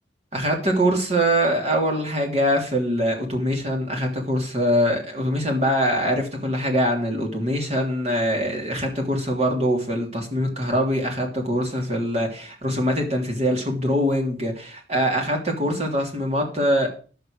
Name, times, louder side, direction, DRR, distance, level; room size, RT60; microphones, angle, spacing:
voice 1, 0.3-16.9, equal, 35° right, 1 dB, 3.2 m, -23 dB
10.5 x 6.9 x 6.6 m, 0.39 s
head